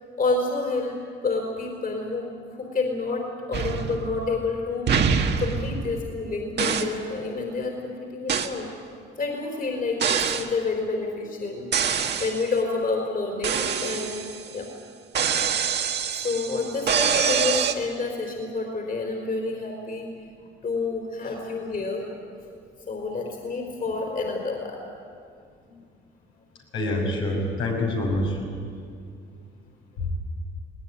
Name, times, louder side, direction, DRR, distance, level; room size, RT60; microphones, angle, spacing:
voice 1, 0.2-1.0 1.2-4.9 5.4-8.7 9.2-11.7 12.2-14.3 14.5-14.7 16.1-20.1 20.6-22.0 22.9-24.8, left 3 dB, 45° left, 1 dB, 4.3 m, -29 dB
sound 1, 3.5-4.5 4.9-6.2 6.6-7.0 8.3-8.6 10.0-10.5 11.7-12.5 13.4-14.5 15.1-17.7, right 6 dB, 60° right, 1.5 m, -25 dB
voice 2, 26.7-28.4 30.0-30.1, left 1 dB, 85° left, -2 dB, 6.4 m, -26 dB
20.5 x 19.0 x 9.8 m, 2.3 s
cardioid pair, 90°, 20 cm